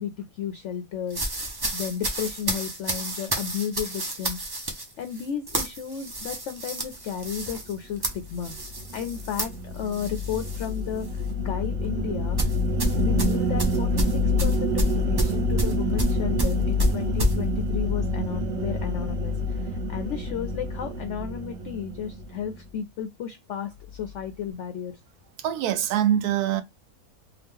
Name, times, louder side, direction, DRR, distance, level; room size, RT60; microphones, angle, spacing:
voice 1, 0.0-4.4 5.0-8.5 8.9-12.4 13.0-25.0, left 8 dB, 65° left, 0.7 m, -33 dB
sound 1, 1.1-10.7 11.0-11.3 12.4-17.4, equal, 30° right, 0.4 m, -29 dB
sound 2, 8.1-22.6, left 1 dB, 60° right, 0.8 m, -27 dB
voice 2, 25.4-26.6, right 11 dB, 90° right, 1.1 m, -24 dB
2.8 x 2.3 x 3.5 m
omnidirectional pair, 1.6 m